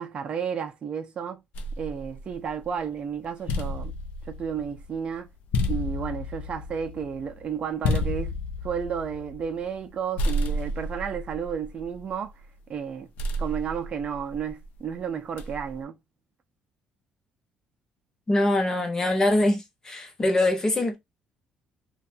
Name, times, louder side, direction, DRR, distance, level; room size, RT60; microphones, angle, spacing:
voice 1, 0.0-1.4 1.8-3.9 4.3-5.3 5.7-8.3 8.6-12.3 12.7-13.1 13.4-15.9, right 7 dB, 40° right, 0.5 m, -32 dB
sound 1, 1.5-2.8 3.2-9.9 10.2-12.4 13.2-14.7 15.4-15.8, left 1 dB, 75° left, 0.4 m, -31 dB
voice 2, 18.3-21.0, left 1 dB, 20° left, 0.8 m, -23 dB
2.6 x 2.2 x 2.6 m
cardioid pair, 125°, 3 cm